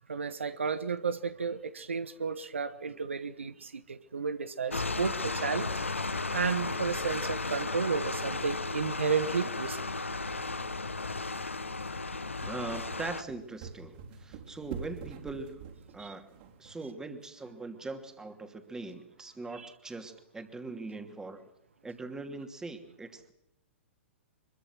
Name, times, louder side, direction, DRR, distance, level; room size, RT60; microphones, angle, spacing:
voice 1, 0.1-5.7 6.3-9.8 16.0-16.1 19.6-19.7, right 5 dB, 75° right, 1.3 m, -32 dB
sound 1, 4.7-13.2, left 3 dB, 85° left, 1.2 m, -34 dB
sound 2, 6.7-16.7, right 6 dB, 45° right, 4.6 m, -49 dB
voice 2, 12.4-15.6 15.9-16.3 16.6-21.4 21.8-23.3, right 3 dB, 10° right, 2.8 m, -41 dB
25.0 x 22.5 x 6.2 m
figure-of-eight pair, 110°, 7 cm